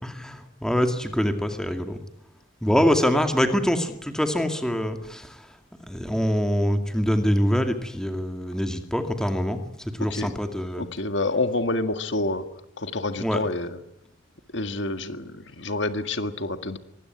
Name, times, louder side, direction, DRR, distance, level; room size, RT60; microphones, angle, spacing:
voice 1, 0.0-2.0 2.6-5.3 5.9-9.6 10.0-10.8 13.1-13.4, equal, 5° left, 6 dB, 2.4 m, -24 dB
voice 2, 10.7-12.4 12.8-13.8 14.5-16.8, left 2 dB, 70° left, 9 dB, 1.8 m, -28 dB
24.0 x 20.5 x 9.7 m, 0.77 s
head